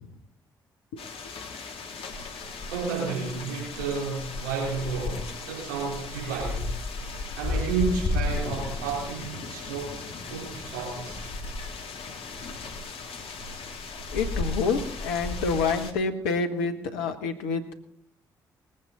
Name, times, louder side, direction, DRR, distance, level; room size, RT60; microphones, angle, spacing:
sound 1, 1.0-15.9, left 3 dB, 60° left, 1.6 m, -34 dB
voice 1, 2.7-6.8 7.3-10.0 10.3-11.2, right 5 dB, 85° right, -2 dB, 3.8 m, -31 dB
voice 2, 14.1-17.7, left 4 dB, 80° left, 7 dB, 1.1 m, -27 dB
20.0 x 9.0 x 4.0 m, 0.64 s
hypercardioid pair, 40°, 11 cm